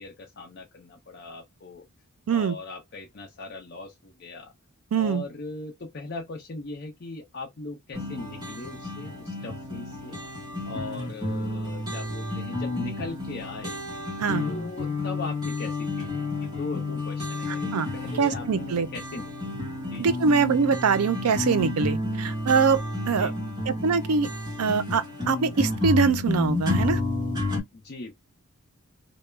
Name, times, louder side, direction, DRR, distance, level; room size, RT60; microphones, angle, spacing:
voice 1, 0.0-1.8 2.3-4.5 4.9-10.2 10.7-13.8 14.5-19.3 19.9-20.1 23.2-23.3 27.7-28.1, left 3 dB, 45° left, 0.5 m, -39 dB
voice 2, 4.9-5.2 14.2-14.4 17.7-17.9 18.2-18.9 20.0-22.8 23.1-23.3 23.7-24.3 24.6-27.0, right 5 dB, 80° right, 0.4 m, -23 dB
sound 1, 7.9-27.6, left 2 dB, 15° right, 1.0 m, -31 dB
2.2 x 2.0 x 3.1 m
head